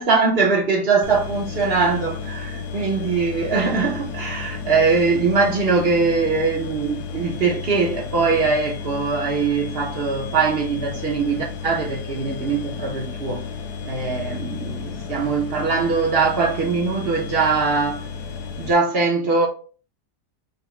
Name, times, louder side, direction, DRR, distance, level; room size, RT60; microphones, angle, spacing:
voice 1, 0.0-13.4 13.8-18.1 18.6-19.5, right 4 dB, 60° right, 0.6 m, -21 dB
sound 1, 1.0-18.7, left 5 dB, 70° left, 1.2 m, -33 dB
5.4 x 2.0 x 3.0 m
omnidirectional pair, 1.9 m